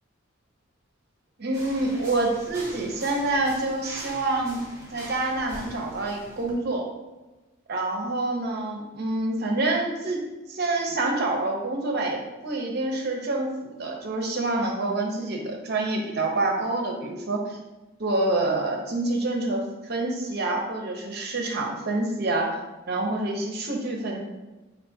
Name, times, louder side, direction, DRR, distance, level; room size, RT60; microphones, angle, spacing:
voice 1, 1.4-4.6 4.9-6.9 7.7-10.2 10.5-17.6 18.0-22.6 22.9-24.2, right 2 dB, 50° right, 1 dB, 0.6 m, -27 dB
sound 1, 1.5-6.5, right 1 dB, 15° right, 1.0 m, -43 dB
4.3 x 3.3 x 2.7 m, 1.1 s
head